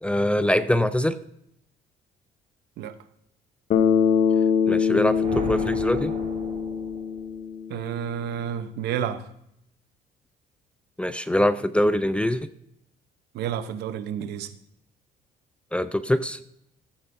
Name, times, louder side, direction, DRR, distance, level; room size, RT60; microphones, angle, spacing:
voice 1, 0.0-1.2 4.7-6.1 11.0-12.5 15.7-16.4, left 1 dB, 5° left, 13 dB, 0.4 m, -23 dB
Bass guitar, 3.7-7.9, left 7 dB, 55° left, 1.0 m, -23 dB
sound 1, 4.8-7.4, right 3 dB, 40° right, 3.9 m, -37 dB
voice 2, 7.7-9.2 13.3-14.5, right 9 dB, 75° right, 11 dB, 0.9 m, -30 dB
14.0 x 9.0 x 2.7 m, 0.75 s
cardioid pair, 110°, 17 cm